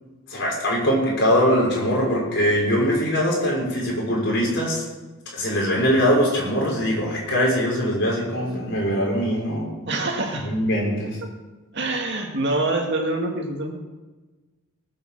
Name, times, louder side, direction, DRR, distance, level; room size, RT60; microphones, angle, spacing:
voice 1, 0.3-4.9 5.3-9.7 10.5-11.2, equal, 55° left, -3 dB, 6.0 m, -22 dB
voice 2, 9.9-10.5 11.7-13.8, right 2 dB, 50° right, 2 dB, 2.2 m, -25 dB
18.5 x 8.1 x 7.4 m, 1.2 s
head